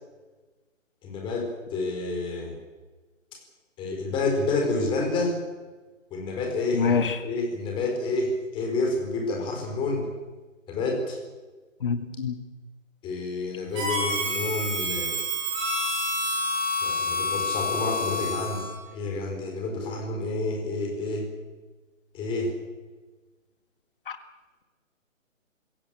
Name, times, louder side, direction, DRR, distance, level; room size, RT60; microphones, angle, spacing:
voice 1, 1.0-2.5 3.8-5.4 6.1-10.1 10.7-11.2 13.0-15.1 16.8-21.3 22.1-22.5, left 2 dB, 10° left, 2 dB, 4.3 m, -29 dB
voice 2, 6.7-7.2 11.8-12.4 24.1-24.2, left 5 dB, 40° left, 9 dB, 1.8 m, -25 dB
Harmonica, 13.7-18.8, left 1 dB, 15° right, 6.0 m, -28 dB
25.5 x 16.0 x 7.7 m, 1.3 s
figure-of-eight pair, 155°, 40 cm